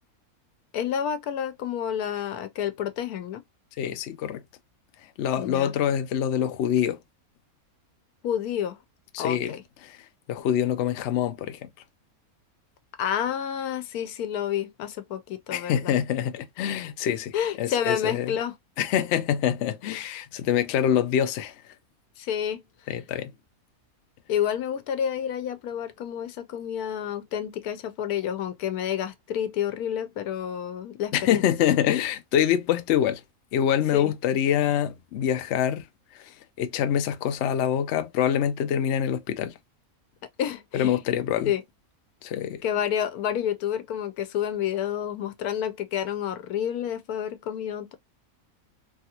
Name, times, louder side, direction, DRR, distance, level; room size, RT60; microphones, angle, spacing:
voice 1, 0.7-3.4 5.4-5.7 8.2-8.8 9.2-9.6 13.0-15.9 17.3-18.5 22.2-22.6 24.3-31.5 33.9-34.1 40.4-41.0 41.5-41.6 42.6-48.0, left 9 dB, 90° left, 1.1 m, -29 dB
voice 2, 3.8-4.4 5.2-7.0 9.1-9.5 9.8-10.0 10.3-11.7 15.5-18.4 18.8-21.6 22.9-23.3 31.1-33.2 33.5-35.8 36.1-39.5 40.7-41.5 42.2-42.6, left 10 dB, 65° left, 0.7 m, -25 dB
3.3 x 2.4 x 2.8 m
omnidirectional pair, 1.6 m